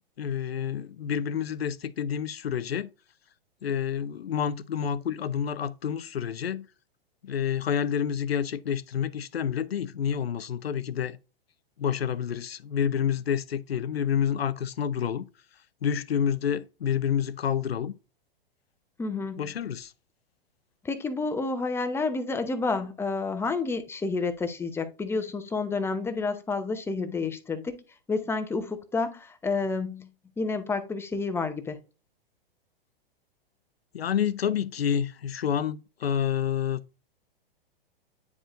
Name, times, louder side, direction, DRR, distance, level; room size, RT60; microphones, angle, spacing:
voice 1, 0.2-2.9 3.6-6.7 7.2-11.2 11.8-15.2 15.8-17.9 19.1-19.9 33.9-36.8, left 8 dB, 90° left, 0.6 m, -28 dB
voice 2, 19.0-19.5 20.8-27.8 28.1-30.1 30.4-31.8, left 4 dB, 10° left, 0.7 m, -30 dB
9.5 x 4.7 x 2.5 m
hypercardioid pair, 115°, 29 cm